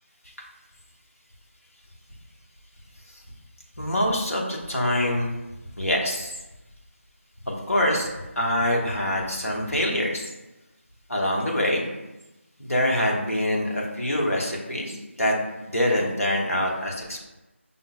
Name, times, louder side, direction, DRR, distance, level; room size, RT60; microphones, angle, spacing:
voice 1, 3.8-5.3 5.8-6.3 7.4-8.1 8.4-10.3 11.1-11.9 12.6-17.3, left 1 dB, 90° left, -2 dB, 1.0 m, -25 dB
5.4 x 2.1 x 2.3 m, 1.0 s
figure-of-eight pair, 170°, 7 cm